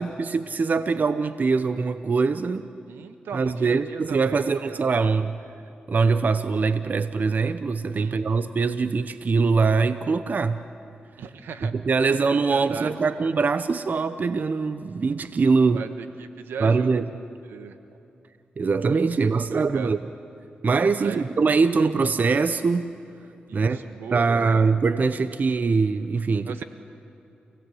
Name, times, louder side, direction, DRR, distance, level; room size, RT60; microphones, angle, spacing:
voice 1, 0.0-2.7 3.3-5.4 5.9-10.6 11.6-15.8 16.6-17.0 18.6-20.0 20.6-23.0 23.5-23.8 24.1-26.6, right 4 dB, 50° right, 12 dB, 0.8 m, -23 dB
voice 2, 2.9-5.2 8.0-8.4 11.2-11.7 12.0-12.9 15.7-16.9 17.5-17.8 19.3-20.0 21.0-21.2 23.5-24.6 26.4-26.6, right 6 dB, 85° right, 9 dB, 1.3 m, -38 dB
30.0 x 17.5 x 8.4 m, 2.9 s
cardioid pair, 55°, 4 cm